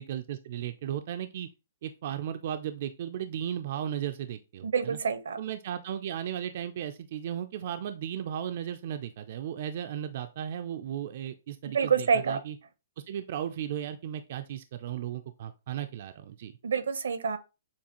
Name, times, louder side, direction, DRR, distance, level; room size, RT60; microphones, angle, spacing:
voice 1, 0.0-1.5 1.8-5.0 5.4-12.6 13.1-16.5, right 10 dB, 50° right, 0.4 m, -35 dB
voice 2, 4.6-5.4 11.7-12.4 16.6-17.4, right 6 dB, 85° right, 0.7 m, -27 dB
7.0 x 2.4 x 2.9 m
hypercardioid pair, 155°, 0 cm